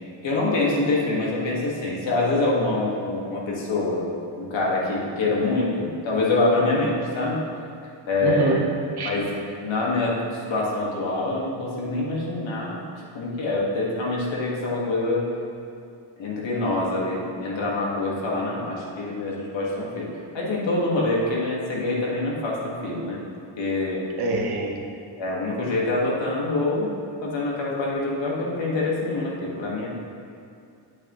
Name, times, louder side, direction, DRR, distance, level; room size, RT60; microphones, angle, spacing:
voice 1, 0.2-4.1 4.4-7.4 8.1-8.6 9.0-9.3 9.6-10.2 10.5-12.9 13.1-15.3 16.2-20.1 20.3-23.2 23.6-24.0 25.2-26.9 27.2-29.9, left 2 dB, 65° left, -4 dB, 1.9 m, -25 dB
voice 2, 8.2-8.6 9.0-9.1 24.2-24.8, right 2 dB, 50° right, 0 dB, 1.1 m, -25 dB
8.8 x 8.5 x 3.1 m, 2.5 s
cardioid pair, 150°, 49 cm